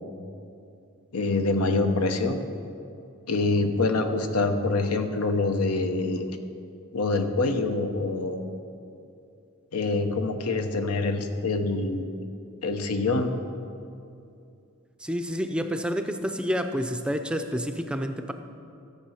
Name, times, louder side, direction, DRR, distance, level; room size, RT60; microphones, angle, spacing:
voice 1, 1.1-2.4 3.3-6.3 6.9-8.4 9.7-12.1 12.6-13.3, left 3 dB, 90° left, 6 dB, 0.9 m, -25 dB
voice 2, 15.0-18.3, equal, 5° right, 7 dB, 0.5 m, -29 dB
13.5 x 7.3 x 5.7 m, 2.6 s
head